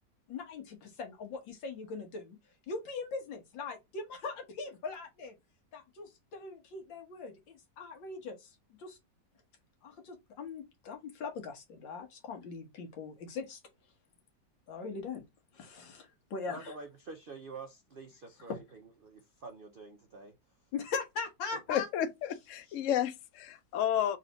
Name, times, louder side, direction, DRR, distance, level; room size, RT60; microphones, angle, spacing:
voice 1, 0.3-2.4 2.7-5.3 5.7-9.0 9.8-13.6 14.7-15.2 15.5-16.8 18.5-18.6 20.7-21.9, left 4 dB, 90° left, 2.0 m, -41 dB
voice 2, 16.5-20.3, right 4 dB, 80° right, 0.4 m, -48 dB
voice 3, 21.7-24.2, left 10 dB, 65° left, 0.7 m, -31 dB
4.1 x 3.2 x 3.9 m
omnidirectional pair, 2.0 m